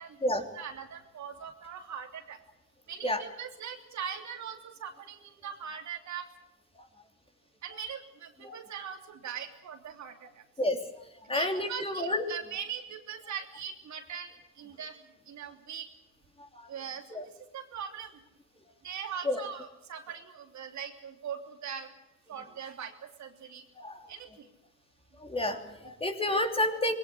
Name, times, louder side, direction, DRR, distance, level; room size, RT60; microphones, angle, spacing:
voice 1, 0.5-2.4 2.9-6.3 7.6-10.1 11.3-15.0 15.3-15.9 16.7-17.0 17.5-18.1 18.8-21.9 22.3-23.6 24.1-24.5, right 8 dB, 70° right, 4 dB, 3.2 m, -41 dB
voice 2, 11.3-12.2 16.5-16.7 17.1-17.2 19.2-19.4 23.8-24.0 25.2-26.9, left 1 dB, 20° left, 4 dB, 3.1 m, -29 dB
21.5 x 17.5 x 10.0 m, 0.88 s
cardioid pair, 90°, 30 cm